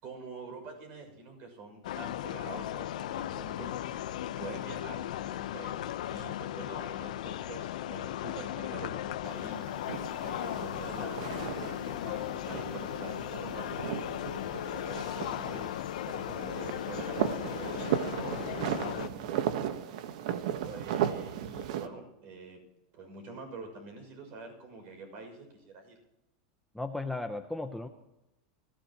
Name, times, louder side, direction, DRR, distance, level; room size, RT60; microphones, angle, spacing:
voice 1, 0.0-9.7 10.2-13.7 14.1-15.6 16.0-17.8 18.4-19.8 20.6-22.6 22.9-26.0, right 3 dB, 45° right, 5 dB, 6.4 m, -46 dB
sound 1, 1.8-19.1, left 12 dB, 80° left, 0.9 m, -37 dB
sound 2, 9.3-21.9, right 10 dB, 70° right, 1.3 m, -36 dB
voice 2, 26.7-27.9, left 2 dB, 5° left, 5 dB, 0.7 m, -35 dB
24.0 x 15.5 x 3.0 m, 0.93 s
supercardioid pair, 145°, 4 cm